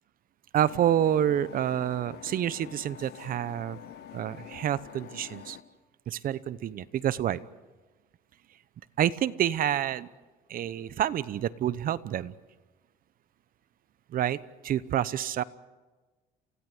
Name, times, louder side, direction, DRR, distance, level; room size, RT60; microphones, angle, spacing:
voice 1, 0.5-3.8 4.1-5.6 6.1-7.4 9.0-10.1 10.5-12.3 14.1-15.4, right 11 dB, 55° right, 17 dB, 1.0 m, -28 dB
sound 1, 0.6-5.6, left 11 dB, 75° left, 1.3 m, -46 dB
28.5 x 17.0 x 8.1 m, 1.2 s
cardioid pair, 110°, 17 cm